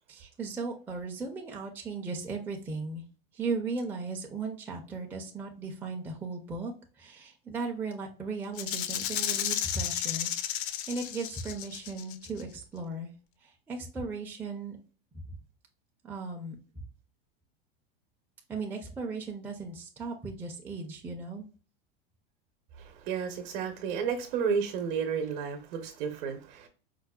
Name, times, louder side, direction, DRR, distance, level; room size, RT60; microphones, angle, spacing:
voice 1, 0.1-3.0 3.3-13.1 13.4-14.8 15.2-15.4 16.0-16.9 18.5-21.5, right 4 dB, 5° right, 0.4 m, -37 dB
Rattle (instrument), 8.6-12.4, left 11 dB, 60° left, 0.4 m, -33 dB
voice 2, 22.8-26.7, right 6 dB, 55° right, 0.8 m, -32 dB
4.6 x 2.1 x 2.2 m
supercardioid pair, 130°, 30 cm